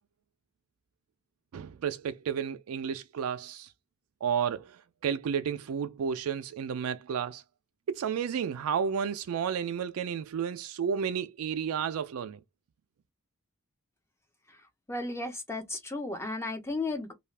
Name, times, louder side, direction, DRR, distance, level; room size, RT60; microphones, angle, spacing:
voice 1, 1.5-3.7 4.2-7.4 7.9-12.4, right 7 dB, 90° right, 0.4 m, -32 dB
voice 2, 14.9-17.1, left 2 dB, 10° left, 0.8 m, -34 dB
2.6 x 2.4 x 3.2 m
head